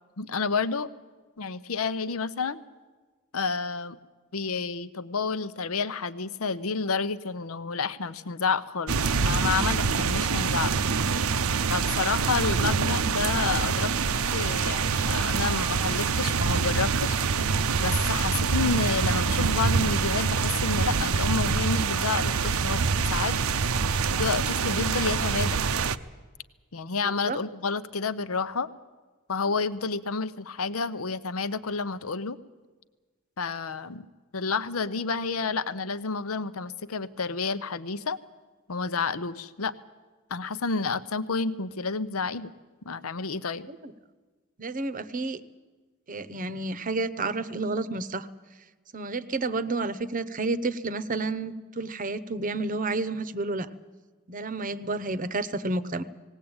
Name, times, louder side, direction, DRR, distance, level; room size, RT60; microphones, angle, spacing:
voice 1, 0.2-0.9 1.4-2.6 3.3-4.0 4.3-10.7 11.7-13.9 14.2-17.2 17.8-22.8 23.1-23.4 24.2-25.6 26.7-28.7 29.3-32.4 33.4-34.0 34.3-38.2 38.7-39.7 40.3-42.5 42.8-43.7, left 4 dB, 85° left, 14 dB, 0.8 m, -30 dB
sound 1, 8.9-26.0, right 5 dB, 80° right, 0.7 m, -25 dB
voice 2, 27.0-27.4 43.7-43.9 44.6-45.4 46.1-48.3 48.9-53.7 54.3-56.0, right 3 dB, 40° right, 15 dB, 0.8 m, -30 dB
19.0 x 17.5 x 8.8 m, 1.3 s
head